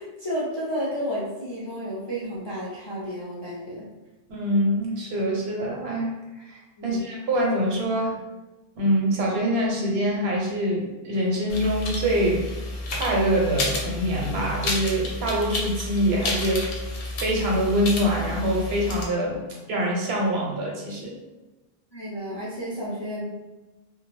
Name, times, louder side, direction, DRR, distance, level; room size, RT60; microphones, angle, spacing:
voice 1, 0.0-3.9 6.8-7.1 21.9-23.2, equal, 35° left, -8 dB, 0.4 m, -31 dB
voice 2, 4.3-6.1 6.5-8.1 8.8-12.5 12.9-16.7 17.2-19.4 19.7-21.2, equal, 80° right, -2 dB, 0.9 m, -24 dB
sound 1, 11.5-19.1, left 2 dB, 70° left, 0.8 m, -31 dB
2.4 x 2.1 x 3.0 m, 1.1 s
omnidirectional pair, 1.0 m